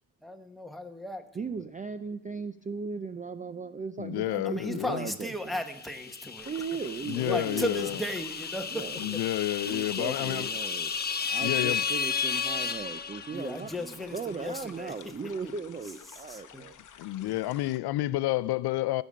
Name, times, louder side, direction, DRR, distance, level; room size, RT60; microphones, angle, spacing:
voice 1, 0.2-1.6 4.4-6.5 7.2-8.9 13.3-14.9 15.4-15.5 16.3-16.6 17.2-17.3, left 1 dB, ahead, 1.1 m, -36 dB
voice 2, 1.3-5.6 6.5-7.9 8.7-9.1 9.6-10.9 11.3-16.7, right 5 dB, 20° right, 0.4 m, -37 dB
voice 3, 4.0-5.1 7.1-8.0 9.0-10.5 11.4-11.8 17.0-19.0, left 16 dB, 70° left, 0.5 m, -30 dB
sound 1, 5.7-13.7, left 6 dB, 25° left, 0.7 m, -33 dB
sound 2, 6.4-17.8, left 9 dB, 50° left, 0.9 m, -52 dB
15.0 x 5.3 x 8.5 m
cardioid pair, 115°, 40 cm